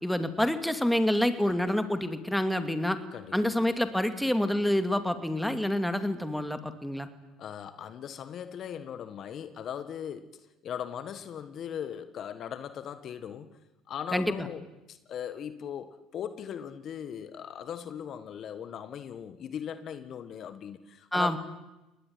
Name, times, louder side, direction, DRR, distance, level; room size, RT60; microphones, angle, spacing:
voice 1, 0.0-3.0 3.3-7.1 14.1-14.5 21.1-21.4, left 1 dB, 5° left, 9 dB, 2.4 m, -27 dB
voice 2, 3.1-3.5 7.4-13.6 13.9-14.6 14.9-21.4, left 8 dB, 50° left, 12 dB, 1.6 m, -39 dB
23.5 x 19.5 x 9.7 m, 1.0 s
supercardioid pair, 80°, 0 cm